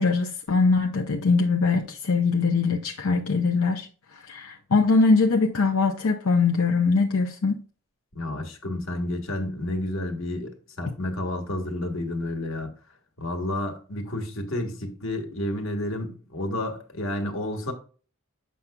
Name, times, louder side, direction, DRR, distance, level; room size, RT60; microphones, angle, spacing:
voice 1, 0.0-3.9 4.3-7.6, left 4 dB, 90° left, 0.6 m, -22 dB
voice 2, 8.1-10.5 10.8-12.7 13.2-17.7, left 1 dB, 65° left, 1.4 m, -30 dB
7.3 x 5.8 x 2.2 m
head